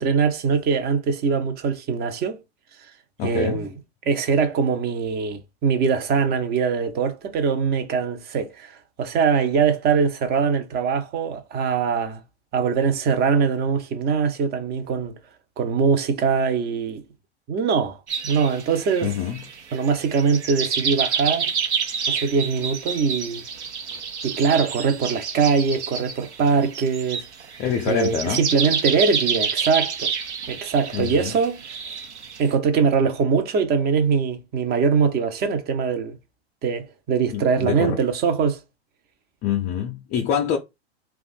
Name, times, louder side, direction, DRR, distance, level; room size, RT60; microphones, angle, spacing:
voice 1, 0.0-2.4 3.2-3.7 4.1-12.2 12.5-15.1 15.6-17.0 17.5-18.0 18.2-19.1 19.7-21.5 22.1-23.4 24.2-27.3 27.9-30.1 30.5-31.6 31.8-32.0 32.4-36.2 36.6-38.6, right 5 dB, 30° right, 0.6 m, -22 dB
voice 2, 3.2-3.7 19.0-19.4 27.6-28.5 30.9-31.3 37.3-38.0 39.4-40.6, left 8 dB, 30° left, 0.5 m, -25 dB
sound 1, 18.1-32.5, right 6 dB, 85° right, 0.9 m, -29 dB
2.5 x 2.3 x 4.0 m
hypercardioid pair, 110°, 33 cm